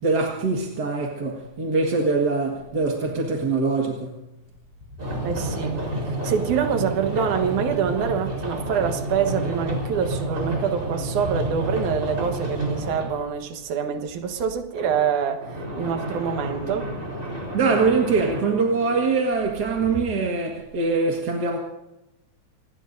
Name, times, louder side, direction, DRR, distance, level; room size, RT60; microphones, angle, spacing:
voice 1, 0.0-4.2 17.5-21.6, right 4 dB, 40° right, 1.7 m, -23 dB
sound 1, 4.4-20.0, left 2 dB, 80° left, 4.4 m, -43 dB
sound 2, 5.0-13.2 15.4-18.4, right 1 dB, 25° right, 4.4 m, -30 dB
voice 2, 5.2-5.8 6.0-16.9, right 7 dB, 75° right, 2.7 m, -26 dB
27.5 x 19.5 x 2.6 m
omnidirectional pair, 3.6 m